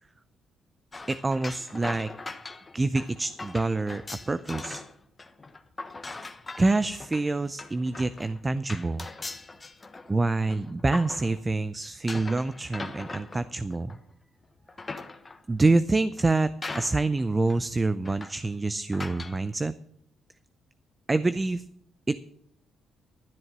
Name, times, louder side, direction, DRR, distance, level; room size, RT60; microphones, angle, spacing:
sound 1, 0.9-4.9 5.2-11.6 12.1-14.1 14.6-15.5 16.2-16.3 16.6-17.2 17.5-17.6 18.0-18.5 18.9-19.4, left 3 dB, 25° left, 1.1 m, -40 dB
voice 1, 1.1-2.1 2.7-4.8 6.6-9.1 10.1-14.0 15.5-19.7 21.1-21.6 22.1-22.2, right 3 dB, 20° right, 14 dB, 0.5 m, -26 dB
12.5 x 7.9 x 6.0 m, 0.73 s
cardioid pair, 90°, 0 cm